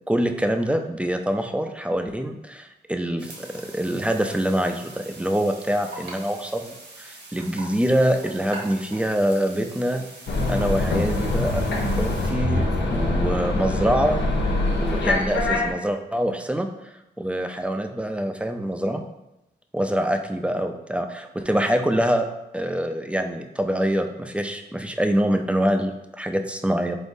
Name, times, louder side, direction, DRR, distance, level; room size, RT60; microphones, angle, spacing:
voice 1, 0.1-3.5 3.7-10.0 10.5-14.2 14.7-16.7 17.2-19.0 19.7-22.2 22.5-27.0, equal, 5° right, 5 dB, 0.3 m, -25 dB
sound 1, 3.2-12.3, right 2 dB, 75° right, 1.1 m, -42 dB
sound 2, 10.3-15.7, left 2 dB, 80° left, 0.7 m, -24 dB
3.9 x 3.6 x 2.6 m, 0.91 s
cardioid pair, 80°, 18 cm